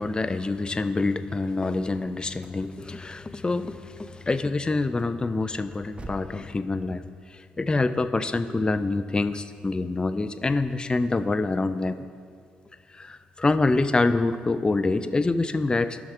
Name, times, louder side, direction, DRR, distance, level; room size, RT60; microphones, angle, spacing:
voice 1, 0.0-12.0 12.9-16.0, left 3 dB, 20° left, 11 dB, 0.4 m, -26 dB
sound 1, 1.7-6.4, right 1 dB, 25° right, 0.8 m, -48 dB
14.5 x 5.9 x 2.4 m, 2.2 s
hypercardioid pair, 45°, 4 cm